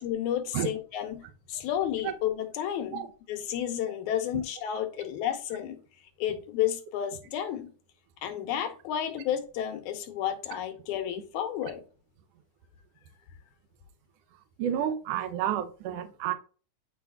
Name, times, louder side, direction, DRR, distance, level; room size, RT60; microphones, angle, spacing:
voice 1, 0.0-5.8 6.2-7.7 8.2-11.8, left 10 dB, 80° left, 2.2 m, -31 dB
voice 2, 14.6-16.3, right 10 dB, 75° right, 1.5 m, -30 dB
9.1 x 4.8 x 2.3 m
omnidirectional pair, 3.4 m